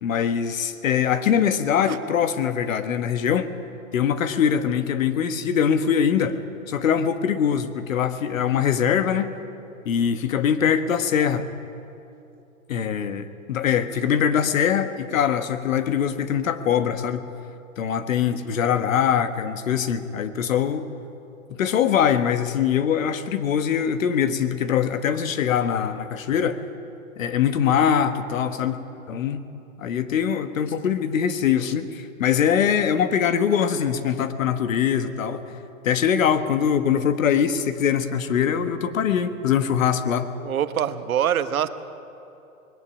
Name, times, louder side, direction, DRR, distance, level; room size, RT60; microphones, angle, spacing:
voice 1, 0.0-3.5 3.9-6.4 6.7-9.3 9.8-11.5 12.7-17.3 17.8-20.9 21.6-26.6 27.2-28.8 29.1-29.4 29.8-35.4 35.8-40.3, left 8 dB, 70° left, 10 dB, 1.3 m, -22 dB
voice 2, 40.4-41.7, right 9 dB, 85° right, 11 dB, 1.1 m, -24 dB
20.0 x 15.5 x 8.7 m, 2.8 s
hypercardioid pair, 155°, 41 cm